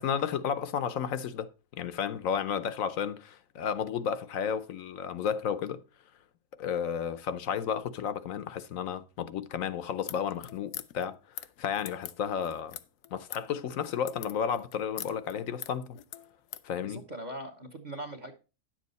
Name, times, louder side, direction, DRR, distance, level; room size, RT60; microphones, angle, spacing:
voice 1, 0.0-5.8 6.6-12.8 13.1-16.0 16.6-17.0, left 8 dB, 65° left, 1.0 m, -32 dB
sound 1, 10.0-16.7, left 12 dB, 85° left, 1.2 m, -44 dB
voice 2, 16.8-18.3, right 1 dB, 35° right, 1.0 m, -41 dB
10.0 x 7.6 x 4.0 m
omnidirectional pair, 1.7 m